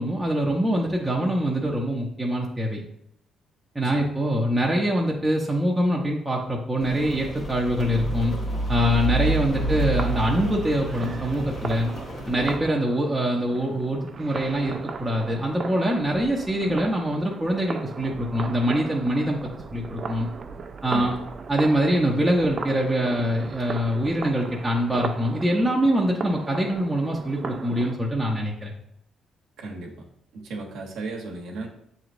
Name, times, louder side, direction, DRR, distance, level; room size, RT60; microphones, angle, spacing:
voice 1, 0.0-2.8 3.7-8.3 8.7-11.9 12.3-20.3 20.8-21.2 21.5-28.7, equal, 10° right, -3 dB, 0.7 m, -24 dB
Rain, 6.8-12.6, right 2 dB, 55° left, 1.2 m, -29 dB
sound 1, 9.5-28.0, right 5 dB, 45° right, 0.3 m, -37 dB
voice 2, 29.6-29.9 30.3-31.7, right 3 dB, 85° right, -1 dB, 0.8 m, -35 dB
7.1 x 3.0 x 2.5 m, 0.74 s
cardioid pair, 90°, 0 cm